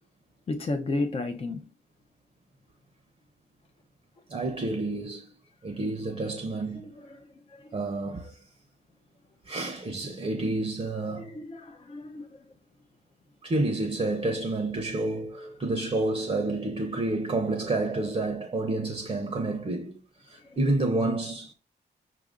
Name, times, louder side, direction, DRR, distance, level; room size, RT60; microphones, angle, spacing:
voice 1, 0.5-1.7 6.7-7.8 11.1-12.4 20.4-20.6, left 2 dB, 30° left, 0.5 m, -34 dB
voice 2, 4.3-5.4 5.6-6.9 7.7-8.4 9.4-11.4 13.4-21.5, right 2 dB, 30° right, 0.6 m, -29 dB
5.7 x 2.5 x 3.6 m
wide cardioid pair, 160°, 18 cm